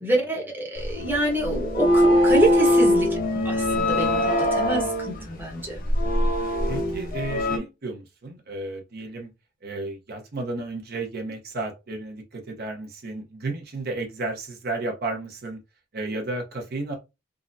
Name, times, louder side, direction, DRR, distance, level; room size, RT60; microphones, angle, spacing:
voice 1, 0.0-5.8, right 1 dB, 10° right, 0.9 m, -27 dB
sound 1, 0.8-7.6, left 1 dB, 50° left, 0.7 m, -22 dB
voice 2, 6.7-9.3 9.6-15.6 15.9-17.0, right 2 dB, 55° right, 0.8 m, -33 dB
3.7 x 2.0 x 2.5 m
head